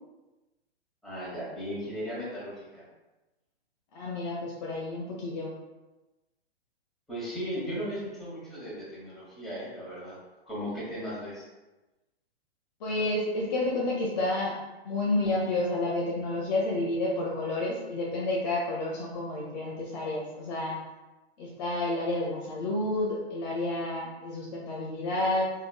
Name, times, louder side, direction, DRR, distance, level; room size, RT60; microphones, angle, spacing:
voice 1, 1.0-2.8 7.1-10.2 10.5-11.5, equal, ahead, -9 dB, 1.3 m, -36 dB
voice 2, 3.9-5.5 12.8-14.6 14.8-20.8 21.4-25.5, left 2 dB, 40° left, -3 dB, 0.7 m, -30 dB
3.5 x 3.2 x 2.2 m, 1.1 s
figure-of-eight pair, 120°, 32 cm